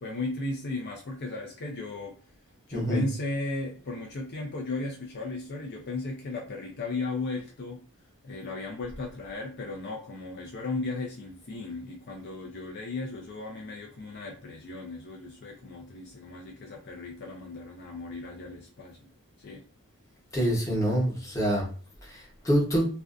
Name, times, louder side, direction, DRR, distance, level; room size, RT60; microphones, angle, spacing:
voice 1, 0.0-2.2 2.7-7.8 8.2-19.0 19.4-19.6, left 2 dB, 50° left, 0 dB, 0.4 m, -36 dB
voice 2, 2.7-3.0 20.3-21.7 22.1-22.9, equal, 15° left, -3 dB, 0.8 m, -26 dB
2.5 x 2.2 x 2.4 m, 0.39 s
head